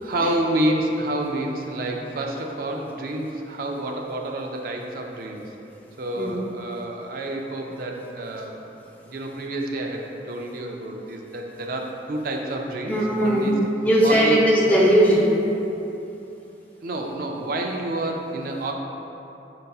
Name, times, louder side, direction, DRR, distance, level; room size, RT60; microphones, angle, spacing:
voice 1, 0.0-5.4 6.0-8.7 9.1-13.5 14.0-14.4 16.8-18.7, right 1 dB, 50° right, 1 dB, 0.4 m, -29 dB
voice 2, 12.9-13.5 13.8-15.4, equal, 10° left, -4 dB, 0.5 m, -18 dB
5.3 x 3.9 x 2.3 m, 3.0 s
head